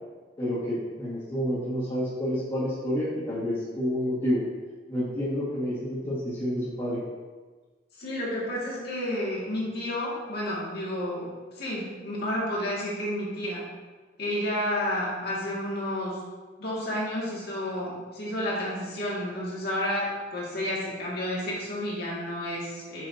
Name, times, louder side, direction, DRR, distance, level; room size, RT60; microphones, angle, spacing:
voice 1, 0.4-4.4 4.9-7.0, equal, 25° left, -11 dB, 1.7 m, -29 dB
voice 2, 8.0-13.7 14.2-16.2 16.6-23.1, left 1 dB, 60° left, -6 dB, 2.1 m, -31 dB
7.5 x 5.5 x 2.8 m, 1.3 s
head